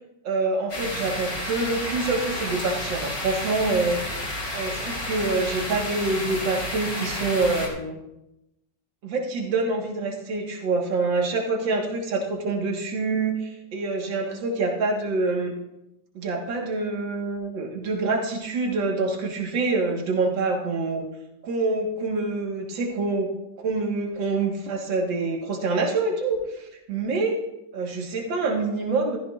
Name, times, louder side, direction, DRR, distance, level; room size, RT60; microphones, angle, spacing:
voice 1, 0.2-4.0 4.5-8.0 9.0-15.5 16.2-21.0 21.4-23.3 23.6-27.4 27.7-29.2, right 3 dB, 80° right, 0 dB, 2.2 m, -26 dB
sound 1, 0.7-7.7, left 1 dB, 50° left, 4.0 m, -31 dB
15.0 x 14.0 x 2.4 m, 0.89 s
omnidirectional pair, 2.0 m